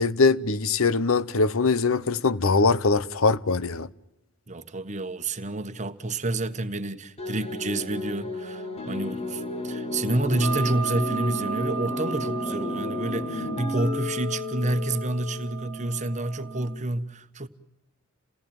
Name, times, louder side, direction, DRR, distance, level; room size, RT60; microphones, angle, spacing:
voice 1, 0.0-3.9, left 4 dB, 70° left, 0.8 m, -22 dB
voice 2, 4.5-17.5, right 2 dB, 35° right, 1.3 m, -29 dB
sound 1, 7.2-15.6, left 2 dB, 30° left, 2.1 m, -33 dB
sound 2, 10.4-16.8, right 5 dB, 75° right, 1.4 m, -35 dB
29.0 x 18.0 x 8.9 m
head